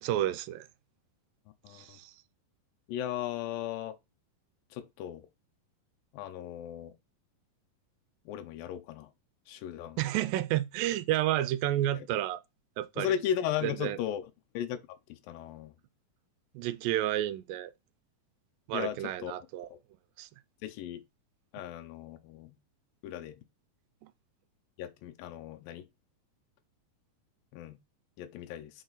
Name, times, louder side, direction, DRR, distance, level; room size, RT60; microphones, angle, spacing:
voice 1, 0.0-0.7 1.7-2.1 10.0-12.4 12.8-13.2 13.6-14.0 16.6-17.7 18.7-19.7 20.2-20.3, right 13 dB, 80° right, 2.3 m, -31 dB
voice 2, 2.9-4.0 4.8-5.2 6.1-6.9 8.3-9.1 9.5-10.0 12.0-12.1 13.0-14.2 14.5-14.8 15.3-15.7 18.7-19.3 19.7-19.8 20.6-21.0 21.5-22.5 23.0-23.3 24.8-25.8 27.5-27.8 28.2-28.7, left 10 dB, 80° left, 2.5 m, -36 dB
6.4 x 4.0 x 4.0 m
omnidirectional pair, 4.0 m